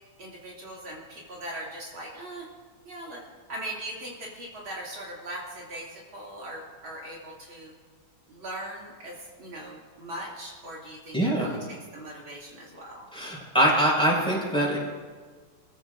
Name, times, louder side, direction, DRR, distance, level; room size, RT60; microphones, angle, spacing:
voice 1, 0.2-2.5 2.9-3.2 3.5-7.7 8.3-13.1, right 1 dB, 70° right, -4 dB, 3.4 m, -40 dB
voice 2, 11.1-11.5 13.1-14.8, right 1 dB, ahead, -4 dB, 5.2 m, -23 dB
27.0 x 15.0 x 2.6 m, 1.5 s
omnidirectional pair, 2.3 m